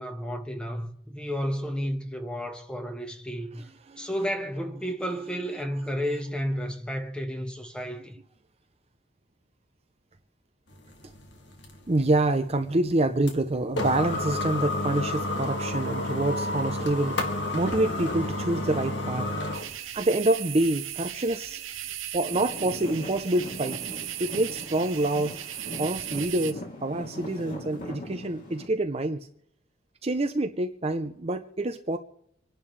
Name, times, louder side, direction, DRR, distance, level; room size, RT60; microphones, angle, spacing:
voice 1, 0.0-3.6 4.0-8.2, equal, 5° left, 1.4 m, -32 dB
sound 1, 10.7-19.8, left 1 dB, 60° left, 2.2 m, -31 dB
voice 2, 11.9-21.6 22.1-23.8 24.2-25.4 25.8-29.3 30.0-32.0, right 2 dB, 30° right, 0.7 m, -27 dB
sound 2, 19.5-26.5, right 12 dB, 90° right, 1.0 m, -37 dB
Traffic noise roadway noise / Engine, 22.3-28.7, left 1 dB, 40° left, 3.1 m, -40 dB
27.0 x 11.0 x 3.3 m
head